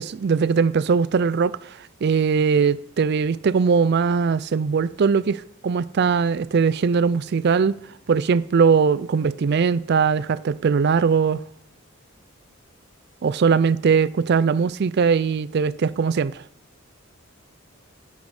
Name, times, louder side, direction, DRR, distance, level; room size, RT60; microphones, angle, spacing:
voice 1, 0.0-7.8 8.1-11.4 13.2-16.4, right 5 dB, 55° right, 0.4 m, -20 dB
12.5 x 10.5 x 4.9 m
head